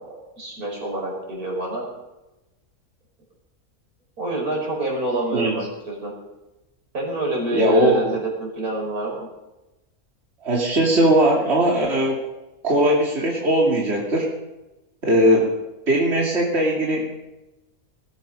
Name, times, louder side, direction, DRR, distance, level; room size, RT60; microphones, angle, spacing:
voice 1, 0.0-1.9 4.2-6.1 6.9-9.3 15.2-15.5, right 2 dB, 80° right, -1 dB, 5.6 m, -27 dB
voice 2, 7.5-8.2 10.4-12.2 12.6-14.3 15.0-15.5 15.9-17.1, right 1 dB, 45° right, -3 dB, 3.0 m, -19 dB
20.0 x 13.0 x 5.3 m, 1.0 s
omnidirectional pair, 1.5 m